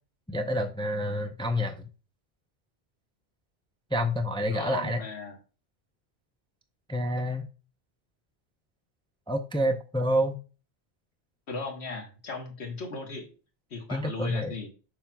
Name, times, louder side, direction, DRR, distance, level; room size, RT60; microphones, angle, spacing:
voice 1, 0.3-1.8 3.9-5.0 6.9-7.5 9.3-10.4 13.9-14.5, equal, 10° left, 6 dB, 0.3 m, -28 dB
voice 2, 4.4-5.4 11.5-13.3 13.7-14.7, left 3 dB, 90° left, 3 dB, 1.6 m, -36 dB
7.0 x 5.9 x 2.3 m, 0.34 s
omnidirectional pair, 1.1 m